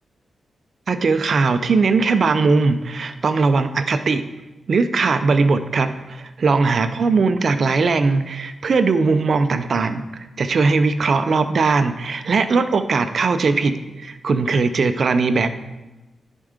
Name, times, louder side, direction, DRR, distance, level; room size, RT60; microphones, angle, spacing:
voice 1, 0.9-4.2 4.7-10.0 10.4-13.7 14.0-15.5, right 4 dB, 45° right, 10 dB, 0.5 m, -19 dB
11.0 x 4.5 x 5.0 m, 1.1 s
wide cardioid pair, 175°, 0 cm